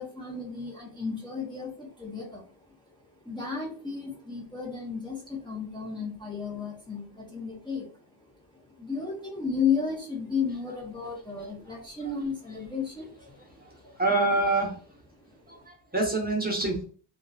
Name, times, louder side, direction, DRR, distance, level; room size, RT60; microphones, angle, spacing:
voice 1, 0.0-13.9 15.2-15.7, left 5 dB, 10° left, -3 dB, 1.0 m, -34 dB
voice 2, 14.0-14.7 15.5-16.8, right 2 dB, 20° right, -2 dB, 1.0 m, -26 dB
2.8 x 2.4 x 2.4 m, 0.41 s
cardioid pair, 70°, 44 cm